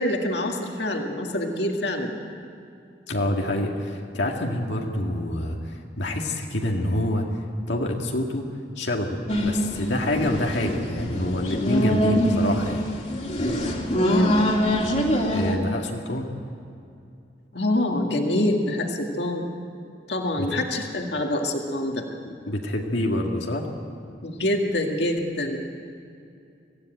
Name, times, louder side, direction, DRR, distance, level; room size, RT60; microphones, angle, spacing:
voice 1, 0.0-2.2 13.8-14.4 17.5-19.5 20.1-22.1 24.2-25.6, left 1 dB, 70° left, 2 dB, 2.1 m, -25 dB
voice 2, 3.1-7.3 7.7-8.5 8.8-12.9 15.3-16.3 20.4-20.5 22.2-23.7, left 1 dB, 90° left, 1 dB, 2.0 m, -27 dB
sound 1, 9.3-15.6, equal, 40° left, 2.6 m, -24 dB
24.5 x 16.5 x 9.1 m, 2.5 s
head